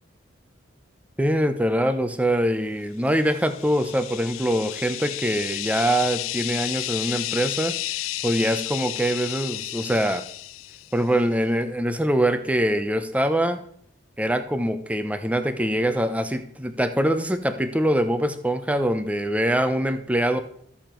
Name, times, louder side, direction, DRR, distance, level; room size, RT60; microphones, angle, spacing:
voice 1, 1.2-7.7 8.2-10.2 10.9-13.6 14.2-20.4, equal, 5° right, 9 dB, 0.7 m, -23 dB
sound 1, 3.2-11.0, left 17 dB, 80° left, 0.3 m, -32 dB
13.5 x 7.2 x 4.5 m, 0.65 s
head